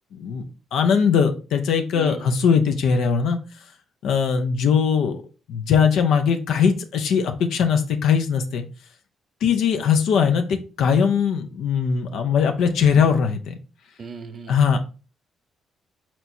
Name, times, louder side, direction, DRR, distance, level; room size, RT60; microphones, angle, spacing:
voice 1, 0.1-3.4 4.0-5.2 5.5-8.6 9.4-13.5 14.5-14.8, left 6 dB, 80° left, 6 dB, 0.6 m, -20 dB
voice 2, 1.9-2.3 14.0-14.5, right 3 dB, 45° right, 10 dB, 0.7 m, -35 dB
4.4 x 4.4 x 2.6 m, 0.34 s
cardioid pair, 90°, 0 cm